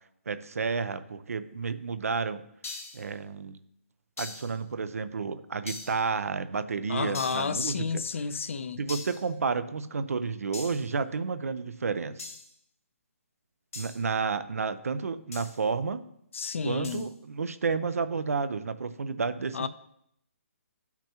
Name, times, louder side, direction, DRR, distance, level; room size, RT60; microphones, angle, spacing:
voice 1, 0.3-2.4 2.9-3.6 4.2-8.0 8.8-12.2 13.7-16.0 16.6-19.7, right 5 dB, 85° right, 0.6 m, -31 dB
sound 1, 2.6-3.1 4.2-4.6 5.7-6.1 7.1-7.6 8.9-9.3 10.5-10.9 12.2-12.5 13.7-14.0 15.3-15.6 16.8-17.1, left 4 dB, 80° left, 1.6 m, -41 dB
voice 2, 6.9-8.8 16.3-17.1 19.5-19.7, left 5 dB, 60° left, 0.5 m, -31 dB
12.0 x 5.9 x 2.9 m
hypercardioid pair, 165°, 8 cm